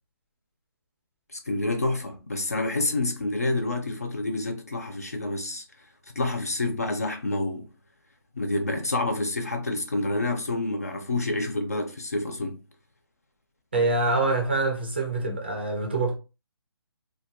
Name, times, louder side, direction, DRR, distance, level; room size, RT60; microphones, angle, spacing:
voice 1, 1.3-5.9 6.2-7.7 8.4-12.6, left 2 dB, 40° left, 0.3 m, -28 dB
voice 2, 13.7-16.1, right 2 dB, 25° right, 0.4 m, -25 dB
2.2 x 2.2 x 2.7 m
hypercardioid pair, 175°, 14 cm